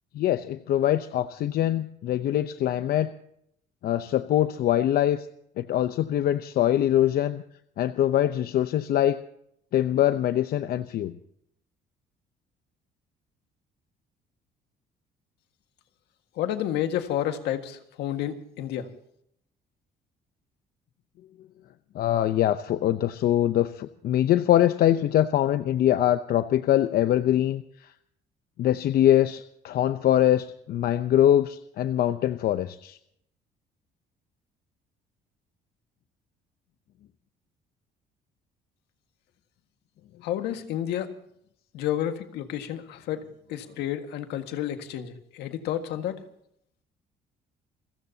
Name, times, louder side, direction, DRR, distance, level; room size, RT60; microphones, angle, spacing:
voice 1, 0.1-3.1 3.8-5.3 5.6-7.4 7.8-9.2 9.7-11.2 21.9-27.9 28.6-33.0, left 12 dB, 65° left, 10 dB, 0.8 m, -23 dB
voice 2, 16.4-18.9 40.2-41.1 41.7-43.2 43.5-46.2, left 11 dB, 85° left, 7 dB, 1.8 m, -30 dB
29.0 x 15.0 x 2.8 m, 0.71 s
cardioid pair, 110°, 17 cm